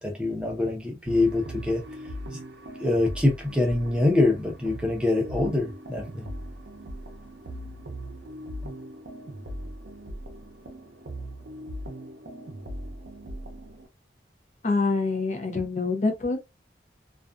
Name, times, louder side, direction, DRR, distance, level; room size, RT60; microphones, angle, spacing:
voice 1, 0.0-1.8 2.8-6.3, left 2 dB, 5° right, 0.6 m, -24 dB
sound 1, 1.1-13.9, equal, 75° right, 0.6 m, -40 dB
voice 2, 14.6-16.4, left 3 dB, 40° left, 0.5 m, -25 dB
2.4 x 2.3 x 2.3 m
head